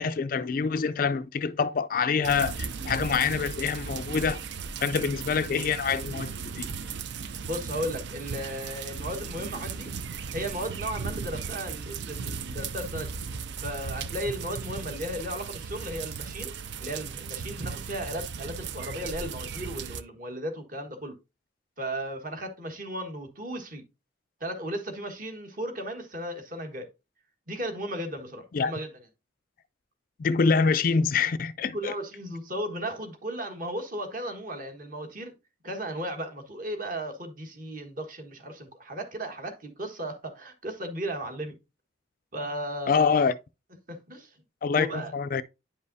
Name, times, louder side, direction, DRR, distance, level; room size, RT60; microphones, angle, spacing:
voice 1, 0.0-4.4 4.8-6.7 28.5-28.7 30.2-31.9 42.9-43.3 44.6-45.4, left 5 dB, 45° left, 0.3 m, -26 dB
sound 1, 2.2-20.0, right 5 dB, 60° right, 0.5 m, -36 dB
voice 2, 7.5-9.9 10.3-13.1 13.6-16.5 16.8-21.1 21.8-23.8 24.4-26.9 27.5-28.9 31.7-35.3 35.6-41.6 42.3-43.3 43.9-44.3 44.7-45.1, equal, 45° right, 1.5 m, -35 dB
9.8 x 5.4 x 2.6 m
head